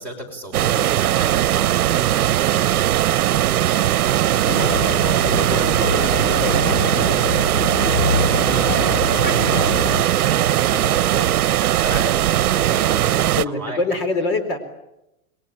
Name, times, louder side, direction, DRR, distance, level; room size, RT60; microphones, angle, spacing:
voice 1, 0.0-5.0 5.4-7.1 8.4-14.0, right 2 dB, 5° left, 2 dB, 5.4 m, -35 dB
sound 1, 0.5-13.4, right 13 dB, 80° right, 0.9 m, -19 dB
sound 2, 4.4-10.1, left 5 dB, 85° left, 3.5 m, -25 dB
voice 2, 5.1-5.6 5.9-7.5 11.9-12.0 13.2-14.6, left 3 dB, 40° left, 7 dB, 4.2 m, -27 dB
29.0 x 22.5 x 8.9 m, 0.90 s
supercardioid pair, 175°, 44 cm